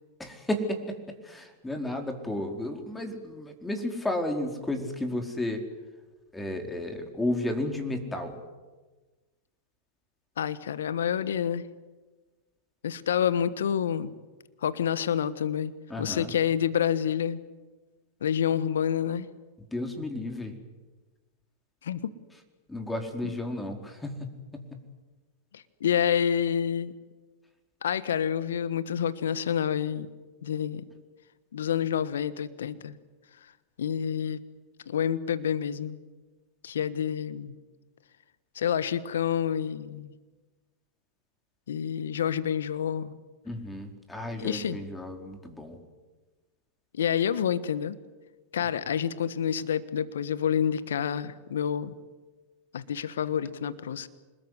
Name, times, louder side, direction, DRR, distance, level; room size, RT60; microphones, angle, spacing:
voice 1, 0.2-1.0 1.2-5.6 6.3-8.4 15.9-16.3 19.7-20.5 22.7-24.8 43.4-45.8, left 1 dB, 10° left, 4 dB, 4.6 m, -33 dB
voice 2, 10.4-11.7 12.8-14.1 14.6-15.7 16.0-17.4 18.2-19.3 21.8-22.0 25.5-26.9 27.8-30.1 30.4-30.8 31.5-32.9 33.8-34.4 34.9-36.0 36.6-37.5 38.5-40.1 41.7-43.2 44.4-44.8 46.9-48.0 48.5-51.9 52.7-54.1, left 8 dB, 75° left, 15 dB, 1.3 m, -28 dB
26.5 x 21.0 x 9.7 m, 1.2 s
hypercardioid pair, 100°, 0 cm